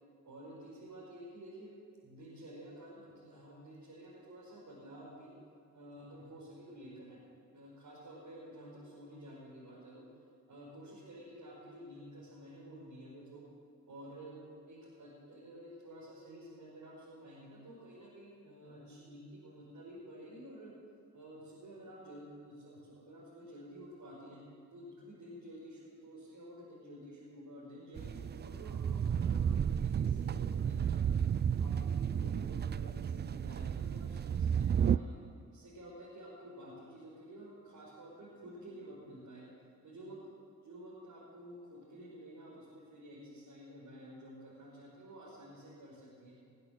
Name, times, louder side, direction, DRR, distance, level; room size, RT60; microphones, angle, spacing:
voice 1, 0.2-1.7 2.0-5.4 5.7-7.3 7.5-10.0 10.5-13.4 13.9-14.4 14.7-20.7 21.1-24.4 24.7-31.1 31.6-35.2 35.5-39.5 39.8-40.3 40.6-46.3, right 1 dB, 55° right, -7 dB, 5.1 m, -51 dB
sound 1, 28.0-35.0, right 8 dB, 30° right, 0.4 m, -32 dB
19.5 x 8.7 x 7.8 m, 2.2 s
hypercardioid pair, 45°, 38 cm